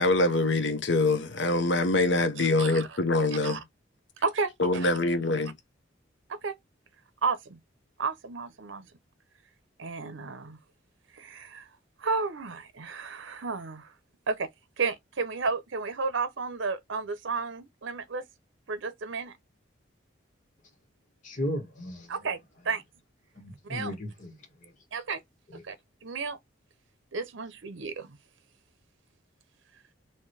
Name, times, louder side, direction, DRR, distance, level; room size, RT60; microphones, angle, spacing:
voice 1, 0.0-3.6 4.6-5.5, left 2 dB, 70° left, 0.9 m, -24 dB
voice 2, 2.4-3.0 3.4-3.6 4.2-4.9 6.3-6.5 7.2-7.6 8.0-8.9 9.8-10.6 11.2-11.6 12.0-13.9 14.3-14.5 14.8-18.2 18.7-19.3 22.1-22.4 22.6-22.8 23.6-23.9 24.9-25.2 25.6-25.8 26.0-26.4 27.1-28.2, right 4 dB, 80° right, 0.8 m, -32 dB
voice 3, 21.2-22.1 23.3-24.3 24.6-24.7 25.5-25.6, left 1 dB, 40° left, 1.8 m, -35 dB
4.4 x 3.0 x 3.2 m
head